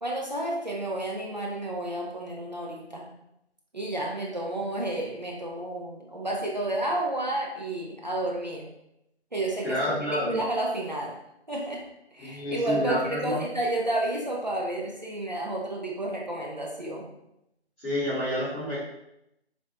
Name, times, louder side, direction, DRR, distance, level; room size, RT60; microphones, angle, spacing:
voice 1, 0.0-3.1 3.7-8.7 9.3-11.2 11.5-11.8 12.1-17.1, right 1 dB, 40° right, -2 dB, 0.4 m, -31 dB
voice 2, 9.6-10.4 12.2-13.4 17.8-18.8, equal, ahead, -32 dB, 0.7 m, -29 dB
3.3 x 2.5 x 2.9 m, 0.83 s
figure-of-eight pair, 155°, 33 cm